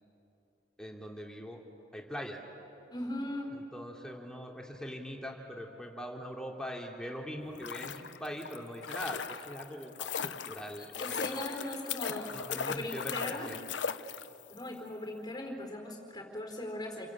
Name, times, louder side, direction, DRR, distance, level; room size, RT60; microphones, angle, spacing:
voice 1, 0.8-1.6 1.9-2.4 3.5-11.6 12.3-13.6, equal, 5° left, 0 dB, 3.0 m, -42 dB
voice 2, 2.9-3.5 10.8-13.5 14.5-17.1, left 1 dB, 20° left, 3 dB, 4.2 m, -39 dB
sound 1, 7.4-14.6 14.9-15.0, left 7 dB, 70° left, 0.8 m, -38 dB
29.5 x 22.5 x 8.8 m, 2.9 s
head